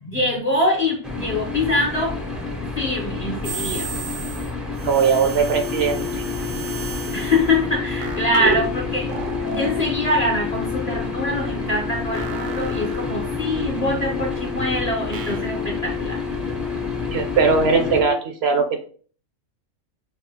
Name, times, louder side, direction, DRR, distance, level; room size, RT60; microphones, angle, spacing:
voice 1, 0.0-2.2 2.8-3.9 7.1-16.2, left 1 dB, 40° left, 0 dB, 0.7 m, -24 dB
sound 1, 1.0-18.0, left 3 dB, ahead, 0.3 m, -30 dB
sound 2, 3.4-4.5 4.8-7.5 8.0-8.7 9.1-9.9 12.1-13.6 15.1-15.5, right 4 dB, 85° right, 1.1 m, -32 dB
voice 2, 4.8-6.2 17.1-18.8, right 5 dB, 65° right, 5 dB, 0.7 m, -20 dB
sound 3, 5.5-18.2, left 9 dB, 75° left, 1.0 m, -32 dB
5.8 x 2.3 x 2.7 m, 0.43 s
omnidirectional pair, 1.3 m